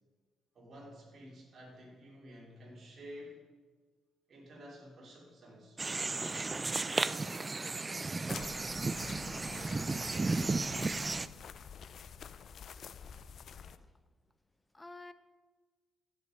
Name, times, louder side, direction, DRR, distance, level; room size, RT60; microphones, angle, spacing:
voice 1, 0.5-3.4 4.3-6.5, equal, 45° right, -4 dB, 3.1 m, -51 dB
sound 1, 5.8-11.3, right 3 dB, 25° right, 0.4 m, -34 dB
sound 2, 8.3-13.8, left 7 dB, 60° left, 0.4 m, -48 dB
voice 2, 12.8-13.2 13.5-13.9 14.7-15.1, left 2 dB, 15° left, 12 dB, 0.7 m, -53 dB
15.5 x 5.6 x 5.2 m, 1.4 s
cardioid pair, 90°, 0 cm